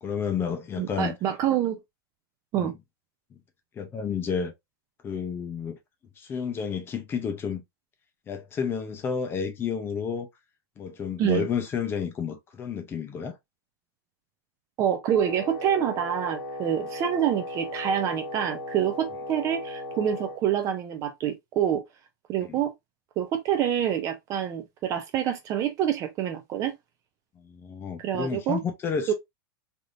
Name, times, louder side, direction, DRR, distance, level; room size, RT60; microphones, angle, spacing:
voice 1, 0.0-1.2 2.6-2.7 3.8-4.5 5.0-5.8 6.2-7.6 8.3-10.3 10.8-13.3 22.5-22.6 27.4-29.1, left 6 dB, 20° left, 0.6 m, -31 dB
voice 2, 0.8-1.8 2.5-2.7 11.2-11.5 14.8-21.8 22.3-22.7 23.2-26.7 28.0-28.6 29.1-29.2, right 9 dB, 25° right, 0.4 m, -26 dB
Wind instrument woodwind instrument, 15.1-20.4, left 1 dB, 85° left, 1.4 m, -37 dB
3.3 x 2.7 x 2.5 m
supercardioid pair, 155°, 12 cm